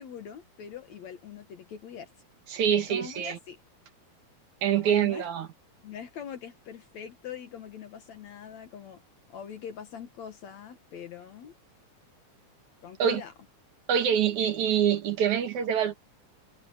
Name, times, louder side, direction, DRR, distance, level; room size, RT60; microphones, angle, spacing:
voice 1, 0.0-2.1 2.9-3.6 4.7-5.3 5.8-9.0 9.3-11.5 12.8-13.3, left 8 dB, 65° left, 2.5 m, -43 dB
voice 2, 2.5-3.4 4.6-5.5 13.0-13.2 13.9-16.0, right 9 dB, 70° right, 3.0 m, -25 dB
omnidirectional pair, 3.7 m